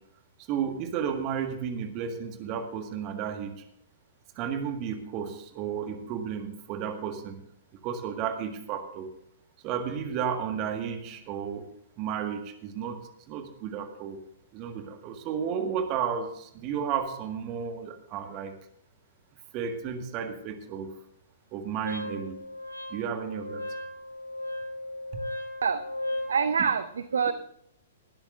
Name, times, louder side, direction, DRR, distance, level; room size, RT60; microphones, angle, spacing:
voice 1, 0.4-3.6 4.3-7.4 7.8-9.1 9.6-11.7 12.0-13.0 13.3-14.2 14.5-18.5 19.5-20.9 21.5-22.4 22.9-23.6, right 7 dB, 30° right, 6 dB, 1.8 m, -33 dB
Wind instrument woodwind instrument, 21.8-26.4, left 1 dB, 75° left, 2.1 m, -36 dB
voice 2, 26.3-27.3, right 6 dB, 65° right, 12 dB, 0.7 m, -26 dB
19.5 x 12.5 x 2.6 m, 0.73 s
figure-of-eight pair, 110°, 0 cm